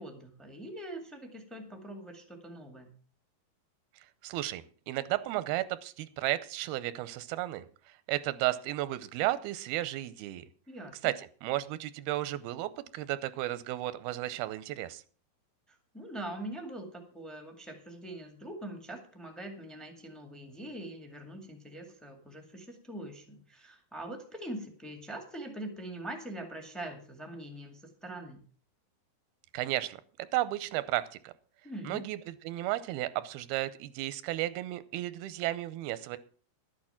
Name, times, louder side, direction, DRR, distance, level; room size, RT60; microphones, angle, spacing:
voice 1, 0.0-2.9 10.7-11.1 15.7-28.4 31.6-32.0, right 1 dB, ahead, 4 dB, 0.6 m, -43 dB
voice 2, 4.2-7.7 8.1-10.5 11.0-11.1 11.4-15.0 29.5-31.3 31.8-32.2 32.4-36.2, right 15 dB, 90° right, 14 dB, 2.6 m, -33 dB
12.0 x 8.8 x 5.8 m, 0.42 s
omnidirectional pair, 4.3 m